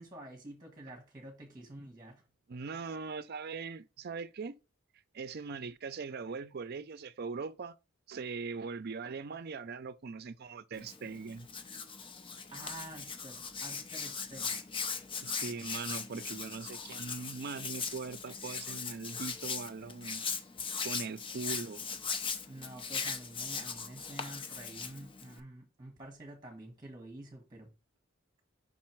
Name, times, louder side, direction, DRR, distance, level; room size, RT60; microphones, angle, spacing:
voice 1, 0.0-2.3 12.5-14.7 22.5-27.7, right 1 dB, 20° right, 1.4 m, -48 dB
voice 2, 2.5-4.5 5.1-7.8 8.1-11.5 15.2-20.2 20.8-21.9, right 4 dB, 55° right, 0.5 m, -41 dB
Hands, 10.7-25.4, left 5 dB, 25° left, 0.6 m, -39 dB
5.4 x 4.2 x 4.5 m
head